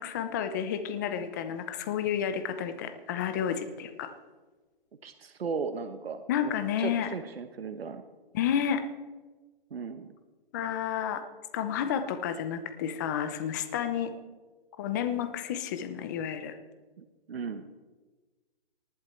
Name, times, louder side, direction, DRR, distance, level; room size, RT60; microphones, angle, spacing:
voice 1, 0.0-4.1 6.3-7.1 8.3-8.8 10.5-11.2 11.5-14.1 14.8-16.6, left 8 dB, 20° left, 10 dB, 0.7 m, -31 dB
voice 2, 5.0-6.5 6.8-8.0 9.7-10.1 17.0-17.7, right 5 dB, 80° right, 9 dB, 1.2 m, -36 dB
19.0 x 11.0 x 4.5 m, 1.3 s
hypercardioid pair, 160°, 29 cm